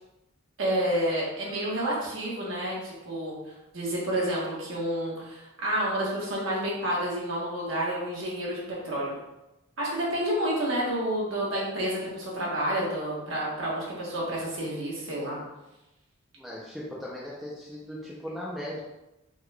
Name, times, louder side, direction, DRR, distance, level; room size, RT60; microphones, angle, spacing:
voice 1, 0.6-9.1 9.8-15.4, right 1 dB, 65° right, -5 dB, 1.2 m, -29 dB
voice 2, 16.4-18.8, equal, ahead, -6 dB, 0.5 m, -38 dB
3.6 x 2.3 x 3.3 m, 0.96 s
head